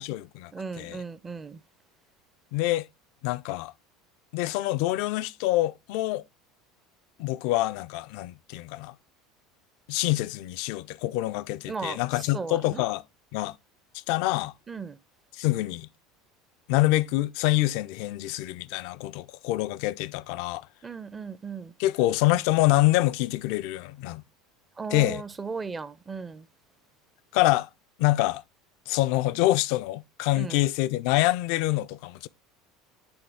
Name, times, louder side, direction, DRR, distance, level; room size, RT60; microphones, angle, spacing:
voice 1, 0.0-1.0 2.5-2.9 3.2-3.7 4.3-6.2 7.2-8.9 9.9-13.0 13.3-13.6 14.1-14.5 15.3-15.9 16.7-20.7 21.8-24.2 24.9-25.2 27.3-27.7 28.0-28.4 28.9-32.3, left 17 dB, 65° left, 0.3 m, -26 dB
voice 2, 0.5-1.6 11.7-12.0 12.3-12.9 14.7-15.0 20.8-21.7 24.8-26.5 30.4-30.6, right 5 dB, 25° right, 0.5 m, -36 dB
8.9 x 3.3 x 3.4 m
hypercardioid pair, 75°, 0 cm